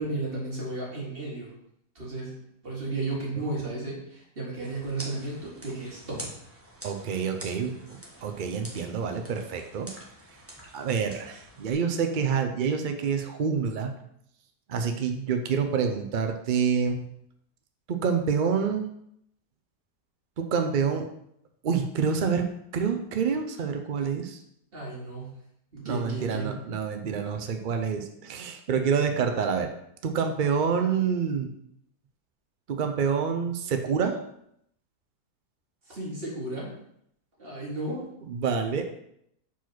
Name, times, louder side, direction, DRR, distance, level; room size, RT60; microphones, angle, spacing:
voice 1, 0.0-1.5 2.0-2.3 2.6-6.2 24.7-25.3 25.7-26.5 35.9-36.7 37.4-38.0, right 2 dB, 35° right, -4 dB, 2.2 m, -33 dB
sound 1, 4.6-11.7, right 1 dB, 10° right, 1.0 m, -46 dB
voice 2, 6.8-9.9 10.7-13.9 14.7-17.0 17.9-18.9 20.4-21.1 21.6-22.5 22.7-24.4 25.8-29.7 30.0-31.5 32.7-34.2 37.9-38.9, right 6 dB, 90° right, 5 dB, 0.4 m, -27 dB
4.7 x 4.3 x 5.9 m, 0.74 s
omnidirectional pair, 1.7 m